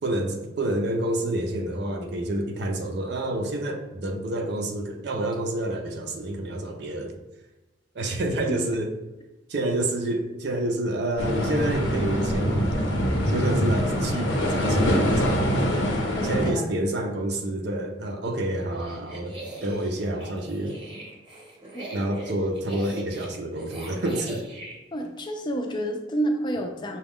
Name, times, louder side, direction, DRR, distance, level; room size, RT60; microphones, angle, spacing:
voice 1, 0.0-7.2 7.9-8.9 9.5-12.9 13.3-15.8 16.2-20.7 21.9-24.5, right 1 dB, 60° right, 3 dB, 0.5 m, -28 dB
sound 1, 11.2-16.5, equal, 85° left, 0.9 m, -24 dB
voice 2, 16.1-16.7 21.7-21.9 24.9-27.0, right 1 dB, 25° left, 3 dB, 0.5 m, -29 dB
sound 2, 18.6-24.8, right 2 dB, 25° right, 0.8 m, -41 dB
5.9 x 2.3 x 3.6 m, 1.1 s
head